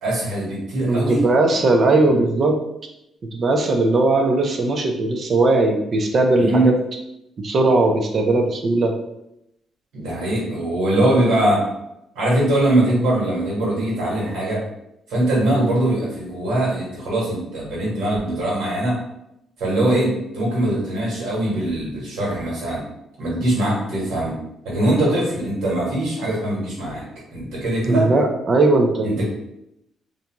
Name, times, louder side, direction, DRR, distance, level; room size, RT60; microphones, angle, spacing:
voice 1, 0.0-1.2 2.1-2.2 6.4-6.7 9.9-11.7 12.1-14.6 15.1-19.0 19.6-22.8 23.2-24.3 24.6-27.0 27.3-28.1 29.0-29.2, right 1 dB, 80° right, -5 dB, 1.3 m, -21 dB
voice 2, 0.9-2.6 3.3-6.7 7.4-8.9 27.9-29.2, right 2 dB, 45° right, 3 dB, 0.5 m, -18 dB
2.5 x 2.2 x 2.9 m, 0.82 s
cardioid pair, 90°, 0 cm